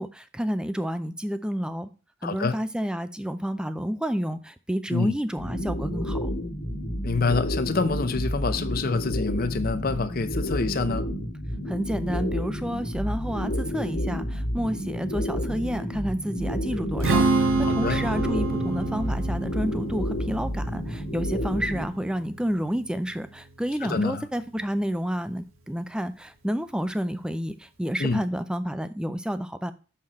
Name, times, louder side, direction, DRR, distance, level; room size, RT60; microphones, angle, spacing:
voice 1, 0.0-1.9 2.2-6.3 11.7-29.7, equal, 5° right, 0.4 m, -30 dB
voice 2, 2.2-2.6 4.9-5.2 7.0-11.1 17.6-18.0 23.8-24.2 28.0-28.2, left 4 dB, 45° left, 0.6 m, -27 dB
sound 1, 5.4-21.9, equal, 65° left, 1.7 m, -30 dB
Strum, 17.0-23.3, right 3 dB, 85° right, 1.4 m, -28 dB
6.5 x 5.8 x 4.2 m
head